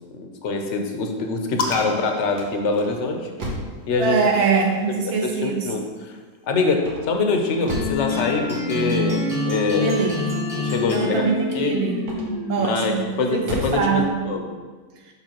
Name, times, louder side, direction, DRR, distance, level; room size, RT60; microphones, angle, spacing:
voice 1, 0.1-3.3 3.9-4.2 5.0-6.1 6.4-10.1 10.5-11.2 11.5-11.8 12.6-14.4, left 3 dB, 55° left, 4 dB, 0.9 m, -24 dB
sound 1, 1.5-3.8 6.8-8.1 12.0-12.5 13.1-13.9, equal, 85° right, 1.7 m, -33 dB
sound 2, 1.6-3.4 4.5-6.2, left 3 dB, 85° left, 1.3 m, -33 dB
voice 2, 4.0-5.7 9.8-10.5 10.9-12.1 12.5-13.1 13.3-14.2, right 5 dB, 65° right, 1 dB, 0.6 m, -23 dB
sound 3, 7.7-12.8, left 3 dB, ahead, 1.0 m, -26 dB
6.9 x 5.5 x 2.9 m, 1.4 s
omnidirectional pair, 1.7 m